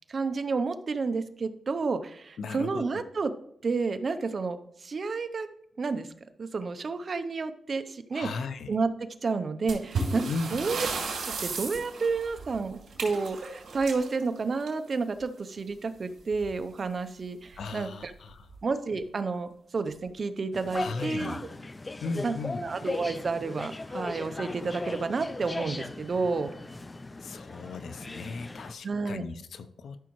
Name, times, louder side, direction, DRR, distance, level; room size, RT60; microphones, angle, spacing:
voice 1, 0.1-3.3 3.6-5.5 5.8-6.1 6.4-8.3 8.7-10.2 10.5-10.9 11.2-18.1 18.6-21.4 22.2-22.3 22.6-26.5 28.8-29.2, right 4 dB, 40° right, 9 dB, 0.6 m, -30 dB
voice 2, 2.4-3.0 8.1-8.8 10.3-10.6 17.6-18.5 20.7-21.4 22.0-22.6 27.2-30.0, left 4 dB, 70° left, 11 dB, 0.6 m, -36 dB
sound 1, 9.7-15.1 16.3-16.5 16.8-16.9 17.5-17.6 18.3-18.6, right 4 dB, 70° right, 3.5 m, -35 dB
sound 2, 20.5-28.7, left 2 dB, 20° left, 0.4 m, -38 dB
13.0 x 6.2 x 3.1 m, 0.69 s
wide cardioid pair, 135°, 0 cm